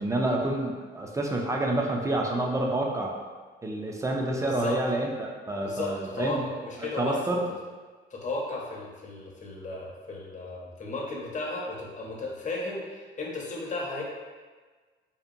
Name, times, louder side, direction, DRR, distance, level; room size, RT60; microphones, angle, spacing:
voice 1, 0.0-3.1 3.6-6.4 6.8-7.4, right 1 dB, 15° right, 0 dB, 0.4 m, -28 dB
voice 2, 4.4-4.8 5.6-7.2 8.1-14.0, left 2 dB, 40° left, -3 dB, 0.6 m, -34 dB
2.7 x 2.1 x 2.5 m, 1.4 s
cardioid pair, 90°, 20 cm